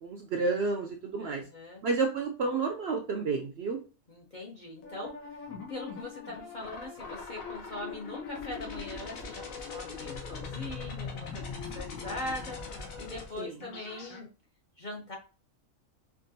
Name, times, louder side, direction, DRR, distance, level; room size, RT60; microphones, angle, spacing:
voice 1, 0.0-1.4 1.8-3.8 13.4-13.5, right 4 dB, 65° right, 3 dB, 0.6 m, -30 dB
voice 2, 1.2-1.8 4.1-5.4 5.7-14.3 14.8-15.2, left 2 dB, 45° left, -2 dB, 0.7 m, -41 dB
sound 1, 4.8-14.2, left 5 dB, 75° left, 1.3 m, -41 dB
4.7 x 2.5 x 2.6 m, 0.33 s
omnidirectional pair, 1.5 m